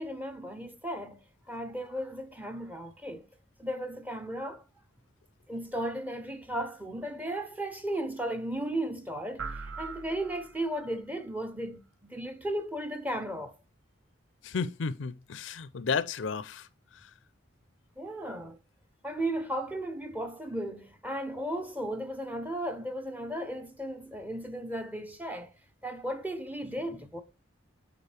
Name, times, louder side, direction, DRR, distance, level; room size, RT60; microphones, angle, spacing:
voice 1, 0.0-3.3 3.6-4.6 5.5-13.6 18.0-18.6 19.0-25.5 25.8-27.2, right 1 dB, 10° right, 0.7 m, -35 dB
sound 1, 9.4-11.0, right 4 dB, 90° right, 0.6 m, -41 dB
voice 2, 14.4-16.7 16.9-17.1, left 5 dB, 70° left, 0.5 m, -33 dB
8.2 x 4.1 x 3.3 m
head